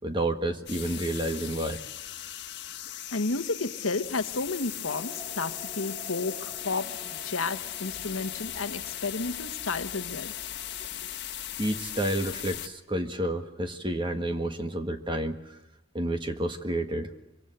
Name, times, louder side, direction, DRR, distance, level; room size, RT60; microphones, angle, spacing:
voice 1, 0.0-1.8 2.2-2.3 11.6-15.6 15.9-17.1, right 1 dB, 25° right, 1.6 m, -30 dB
sound 1, 0.7-12.7, left 12 dB, 55° left, 1.5 m, -38 dB
voice 2, 3.1-7.0 7.2-10.3 11.0-11.1, left 3 dB, 75° left, 1.3 m, -32 dB
sound 2, 4.9-10.8, right 1 dB, 15° left, 3.6 m, -49 dB
25.5 x 24.5 x 7.9 m
head